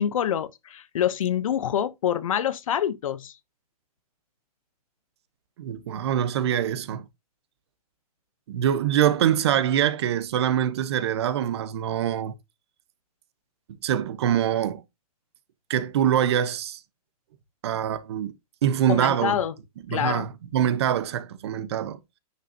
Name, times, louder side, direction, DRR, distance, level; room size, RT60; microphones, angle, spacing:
voice 1, 0.0-3.4 18.9-19.5 19.9-20.2, left 9 dB, 55° left, 1.0 m, -26 dB
voice 2, 5.6-7.1 8.5-12.3 13.8-14.8 15.7-16.8 17.6-18.3 18.6-19.4 19.9-22.0, right 10 dB, 40° right, 1.1 m, -24 dB
9.6 x 6.4 x 2.9 m
hypercardioid pair, 170°, 21 cm